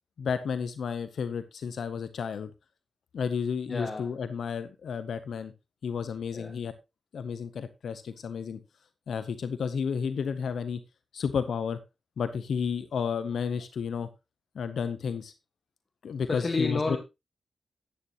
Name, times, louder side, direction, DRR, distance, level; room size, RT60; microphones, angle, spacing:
voice 1, 0.2-2.5 3.1-5.5 5.8-6.7 7.1-8.6 9.1-10.8 11.1-11.8 12.2-14.1 14.5-15.3 16.0-17.0, left 6 dB, 85° left, 11 dB, 0.8 m, -32 dB
voice 2, 3.7-4.1 6.3-6.5 16.3-17.0, left 3 dB, 35° left, 4 dB, 1.6 m, -30 dB
11.0 x 9.3 x 3.0 m, 0.24 s
wide cardioid pair, 95°, 0 cm